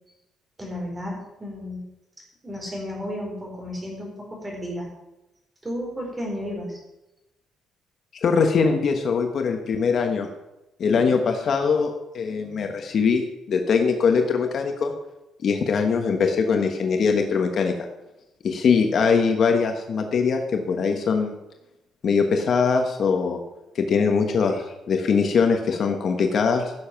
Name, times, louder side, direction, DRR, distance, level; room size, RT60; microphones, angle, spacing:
voice 1, 0.6-1.8 2.4-4.9 5.6-6.8, equal, 15° right, -1 dB, 4.0 m, -33 dB
voice 2, 8.2-10.3 10.8-14.9 15.4-17.7 18.4-21.3 22.0-23.4 23.7-26.7, left 5 dB, 45° left, 5 dB, 1.2 m, -22 dB
15.5 x 7.2 x 5.9 m, 0.95 s
cardioid pair, 155°, 0 cm